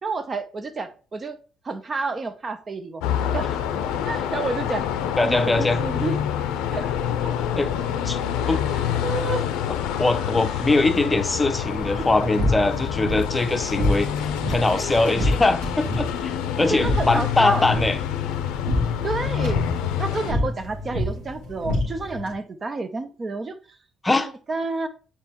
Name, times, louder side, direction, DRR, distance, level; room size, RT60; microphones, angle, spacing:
voice 1, 0.0-1.4 1.6-3.0 3.3-3.6 4.0-4.9 5.2-6.2 6.7-6.9 7.2-7.3 8.4-9.5 16.7-17.7 19.0-19.6 20.0-23.6 24.1-24.9, right 3 dB, 35° right, 0.6 m, -30 dB
sound 1, 3.0-20.3, left 9 dB, 90° left, 0.5 m, -27 dB
voice 2, 5.2-5.8 7.6-7.7 8.0-8.2 8.5-8.6 10.0-14.1 14.5-18.0 24.0-24.3, left 2 dB, 20° left, 0.6 m, -22 dB
sound 2, 11.8-22.3, left 1 dB, 90° right, 2.2 m, -28 dB
7.3 x 4.4 x 3.0 m
supercardioid pair, 70°, 0 cm